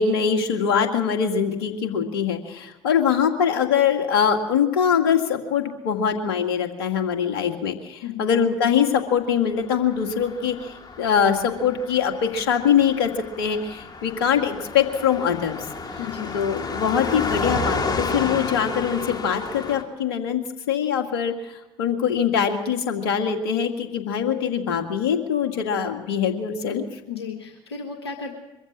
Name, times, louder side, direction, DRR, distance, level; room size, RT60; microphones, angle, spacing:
voice 1, 0.0-15.7 16.3-20.4 20.7-26.8, left 7 dB, 70° left, 5 dB, 2.0 m, -23 dB
voice 2, 8.0-8.3 16.0-16.3 27.1-28.4, left 6 dB, 85° left, 3 dB, 1.6 m, -34 dB
Car passing by, 9.9-19.8, left 3 dB, 30° left, 3.0 m, -31 dB
23.0 x 14.5 x 8.6 m, 1.0 s
figure-of-eight pair, 55°, 13 cm